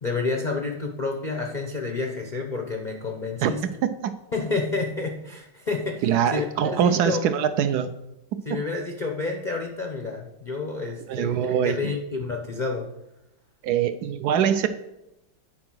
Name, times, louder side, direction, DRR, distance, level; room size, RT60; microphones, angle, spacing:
voice 1, 0.0-3.6 4.3-6.0 6.3-7.2 8.5-12.9, left 3 dB, 80° left, 2 dB, 0.4 m, -29 dB
voice 2, 3.8-4.2 6.0-7.9 8.3-8.6 11.1-11.9 13.6-14.7, right 8 dB, 80° right, 11 dB, 0.9 m, -23 dB
9.6 x 4.7 x 6.1 m, 0.89 s
omnidirectional pair, 2.2 m